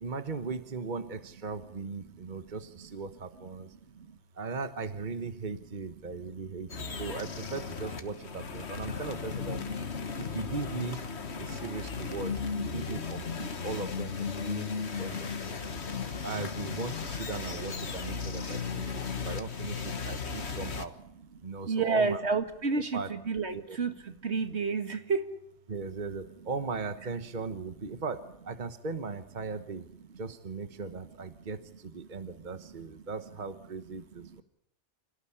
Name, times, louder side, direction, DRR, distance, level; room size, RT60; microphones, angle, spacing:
voice 1, 0.0-3.7 4.4-9.6 10.2-11.1 11.4-15.6 16.2-21.0 21.4-22.2 22.9-23.1 23.5-23.8 25.7-29.9 30.2-34.4, right 4 dB, 40° right, 10 dB, 1.3 m, -38 dB
voice 2, 2.0-2.4 3.9-4.1 6.5-7.0 11.4-11.6 13.4-13.7 14.9-16.1 18.4-18.8 19.2-19.3 20.1-20.2 21.7-25.3 32.0-32.4 34.2-34.4, right 4 dB, 70° right, 8 dB, 2.2 m, -33 dB
sound 1, 6.7-20.9, left 5 dB, 70° left, 1.7 m, -36 dB
26.5 x 18.0 x 10.0 m, 0.75 s
omnidirectional pair, 1.2 m